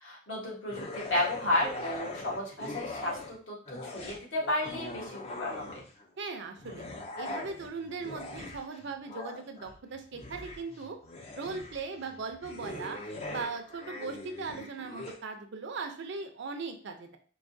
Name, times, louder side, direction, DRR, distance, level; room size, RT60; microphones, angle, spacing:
voice 1, 0.0-3.6 3.8-5.8, left 1 dB, 65° left, -2 dB, 1.2 m, -32 dB
sound 1, 0.7-3.4 3.7-6.0 6.6-15.2, left 2 dB, 30° left, 0.5 m, -41 dB
voice 2, 6.2-6.9 7.2-11.0 11.3-17.2, right 4 dB, 60° right, 6 dB, 0.5 m, -39 dB
4.7 x 2.7 x 2.6 m, 0.43 s
head